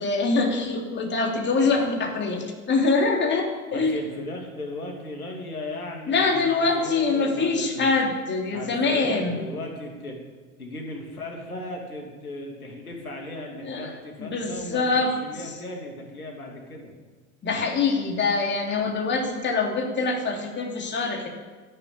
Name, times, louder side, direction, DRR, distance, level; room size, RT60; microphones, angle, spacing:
voice 1, 0.0-4.0 6.1-9.4 13.6-15.1 17.4-21.3, left 3 dB, 25° left, 1 dB, 3.0 m, -24 dB
voice 2, 3.7-6.5 6.8-7.9 8.5-10.2 10.6-16.9, left 1 dB, 80° left, 1 dB, 2.9 m, -36 dB
13.0 x 12.0 x 8.7 m, 1.3 s
figure-of-eight pair, 80°, 43 cm